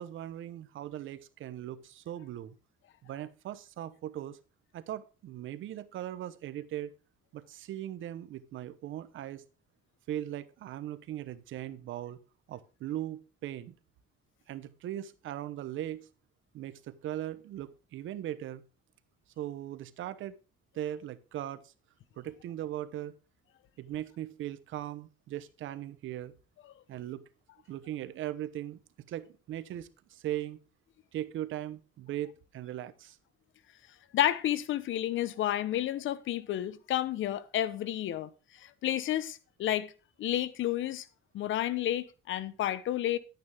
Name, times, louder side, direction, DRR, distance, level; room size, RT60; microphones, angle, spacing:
voice 1, 0.0-2.5 3.0-4.4 4.7-6.9 7.3-9.4 10.1-12.2 12.5-13.7 14.5-16.1 16.5-18.6 19.4-20.3 20.7-21.6 22.2-23.1 23.8-26.3 26.9-27.2 27.7-28.8 29.1-30.6 31.1-33.2, right 12 dB, 80° right, 1.0 m, -39 dB
voice 2, 34.1-38.3 38.6-39.9 40.2-41.1 41.3-43.2, left 12 dB, 75° left, 1.0 m, -31 dB
11.0 x 9.4 x 3.5 m
cardioid pair, 90°, 20 cm